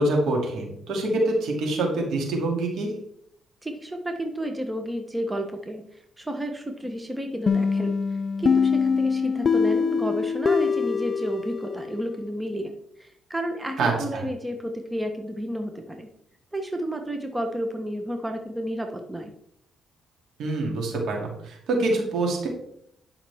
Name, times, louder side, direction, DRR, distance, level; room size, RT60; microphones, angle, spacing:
voice 1, 0.0-2.9 13.8-14.2 20.4-22.5, right 2 dB, 70° right, 0 dB, 2.7 m, -25 dB
voice 2, 3.6-16.1 16.5-19.3, equal, 10° right, 4 dB, 1.1 m, -31 dB
sound 1, 7.5-12.1, left 5 dB, 40° left, 0.4 m, -24 dB
10.5 x 5.8 x 3.5 m, 0.71 s
cardioid pair, 90°, 0 cm